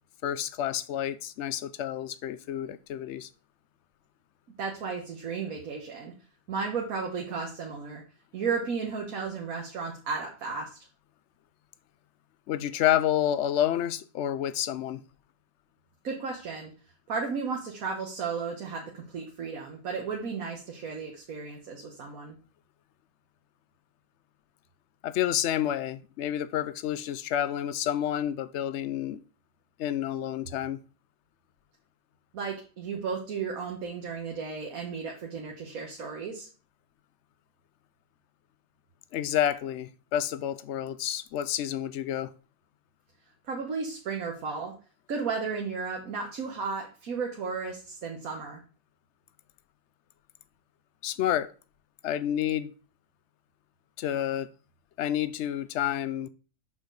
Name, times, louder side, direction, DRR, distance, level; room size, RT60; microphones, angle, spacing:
voice 1, 0.2-3.3 12.5-15.0 25.0-29.2 29.8-30.8 39.1-42.3 51.0-51.5 52.0-52.7 54.0-54.5 55.0-56.3, left 11 dB, 65° left, 0.8 m, -29 dB
voice 2, 4.6-6.1 6.5-8.0 8.3-10.8 16.0-16.7 17.1-22.4 32.3-36.5 43.5-44.8 45.1-48.6, right 5 dB, 90° right, 1.5 m, -34 dB
6.4 x 5.7 x 3.9 m
omnidirectional pair, 1.4 m